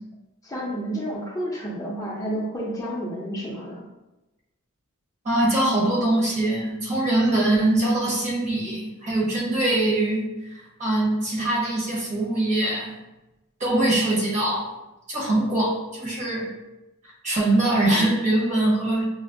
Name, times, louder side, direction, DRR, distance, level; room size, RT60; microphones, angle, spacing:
voice 1, 0.4-3.8, equal, 15° left, -5 dB, 0.5 m, -30 dB
voice 2, 5.2-12.9 13.6-14.7 15.1-16.5 17.2-19.0, right 1 dB, 35° right, -5 dB, 1.1 m, -23 dB
5.7 x 2.0 x 2.5 m, 1.0 s
head